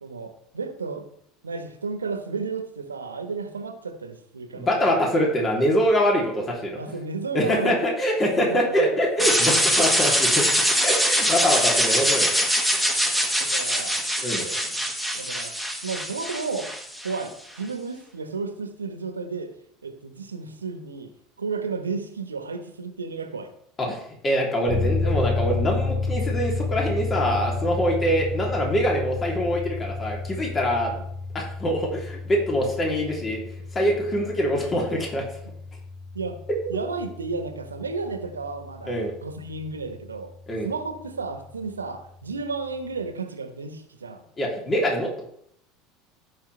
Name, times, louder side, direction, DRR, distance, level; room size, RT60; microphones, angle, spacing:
voice 1, 0.0-1.1 1.4-5.0 6.7-7.8 8.3-9.0 12.8-12.9 13.4-14.8 15.1-15.5 15.8-16.7 17.0-17.3 17.6-19.5 19.8-21.1 21.4-23.5 27.9-28.1 30.9-31.0 35.4-35.5 36.1-36.4 36.7-40.3 40.6-44.2, right 4 dB, 90° right, 8 dB, 1.2 m, -33 dB
voice 2, 4.6-6.8 7.3-10.5 10.8-12.3 14.2-14.4 23.8-30.9 31.3-33.4 33.7-35.2 36.7-36.8 38.9-39.1 40.5-40.7 44.4-45.2, equal, 25° left, -1 dB, 3.0 m, -24 dB
sound 1, 9.2-17.2, equal, 5° left, 1.9 m, -23 dB
sound 2, 24.7-39.1, left 3 dB, 55° left, 4.3 m, -30 dB
15.5 x 6.4 x 3.3 m, 0.70 s
hypercardioid pair, 75°, 0 cm